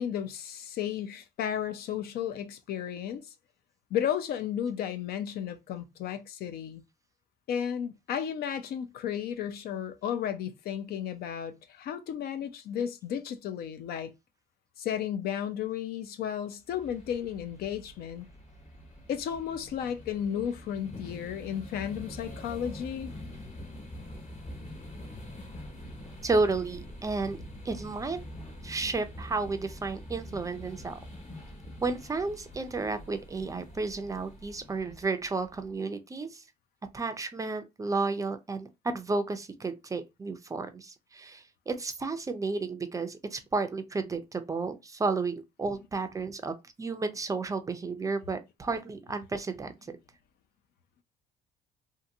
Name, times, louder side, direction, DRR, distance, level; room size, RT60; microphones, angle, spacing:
voice 1, 0.0-3.3 3.9-6.8 7.5-14.1 14.8-18.2 19.1-23.1, left 9 dB, 65° left, 0.5 m, -33 dB
sound 1, 16.7-35.7, left 1 dB, 40° left, 1.3 m, -45 dB
voice 2, 26.2-27.4 27.6-28.2 28.6-31.0 31.8-36.4 36.9-50.0, right 3 dB, 20° right, 0.4 m, -32 dB
2.7 x 2.5 x 2.6 m
cardioid pair, 110°, 17 cm